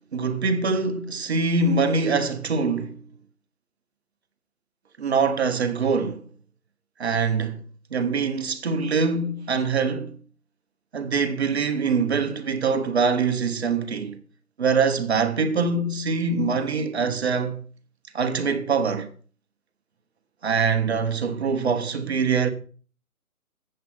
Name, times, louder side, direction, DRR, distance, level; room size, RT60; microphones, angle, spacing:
voice 1, 0.1-3.0 5.0-6.2 7.0-7.6 7.9-10.1 10.9-14.2 14.6-17.6 18.1-19.1 20.4-22.5, right 4 dB, 45° right, 1.2 m, -24 dB
7.7 x 7.4 x 5.6 m
hypercardioid pair, 160°, 44 cm